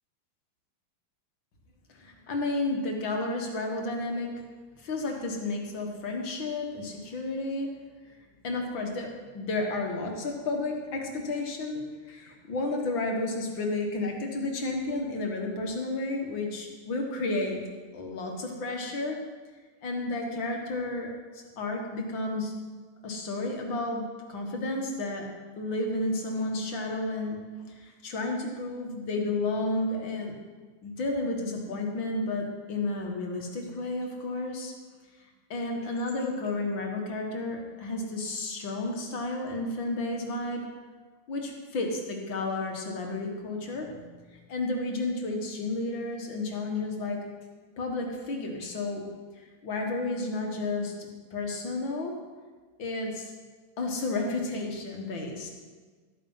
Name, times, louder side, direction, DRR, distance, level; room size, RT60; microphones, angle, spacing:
voice 1, 1.9-4.3 4.8-7.7 8.1-8.2 8.4-17.6 17.9-19.2 19.8-22.5 23.0-25.3 25.6-27.4 27.7-30.4 30.8-34.7 35.5-40.7 41.3-44.2 44.5-47.3 47.8-49.1 49.6-52.1 52.8-53.3 53.8-55.6, left 2 dB, 65° left, 2 dB, 2.3 m, -32 dB
13.5 x 9.2 x 5.7 m, 1.4 s
omnidirectional pair, 2.3 m